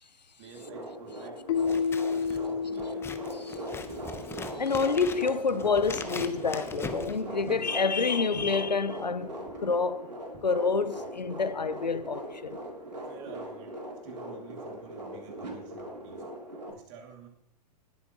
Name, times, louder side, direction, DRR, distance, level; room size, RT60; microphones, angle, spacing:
voice 1, 0.4-3.1 9.4-9.5 13.1-16.3 16.7-17.3, right 6 dB, 45° right, 2.5 m, -50 dB
sound 1, 0.5-16.7, right 1 dB, 80° right, 3.1 m, -40 dB
Keyboard (musical), 1.5-4.3, left 5 dB, 50° left, 0.8 m, -31 dB
Scissors, 1.6-7.8, left 4 dB, 10° left, 0.8 m, -42 dB
voice 2, 4.5-10.1 10.4-12.6, left 4 dB, 85° left, 0.7 m, -28 dB
19.0 x 8.2 x 3.0 m
figure-of-eight pair, 105°, 21 cm